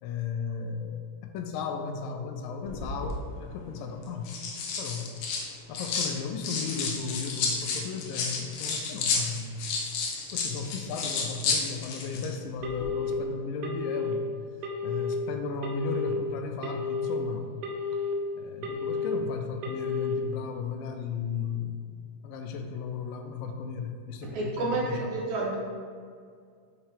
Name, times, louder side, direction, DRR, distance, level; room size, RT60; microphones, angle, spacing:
voice 1, 0.0-4.3 4.8-5.1 5.7-9.7 10.3-14.3 14.8-17.5 17.9-18.0 18.4-21.9 22.2-25.1, left 5 dB, 90° left, 5 dB, 2.3 m, -35 dB
sound 1, 2.6-3.2 4.0-6.1 6.4-12.3 12.6-12.8, left 4 dB, 75° left, 1.6 m, -31 dB
Telephone, 12.6-13.1 13.6-14.1 14.6-15.1 15.6-16.1 16.6-17.1 17.6-18.1 18.6-19.1 19.6-20.1, left 5 dB, 90° right, 1.4 m, -32 dB
voice 2, 24.2-25.6, right 3 dB, 70° right, -2 dB, 1.9 m, -30 dB
7.2 x 4.7 x 3.4 m, 2.1 s
omnidirectional pair, 3.9 m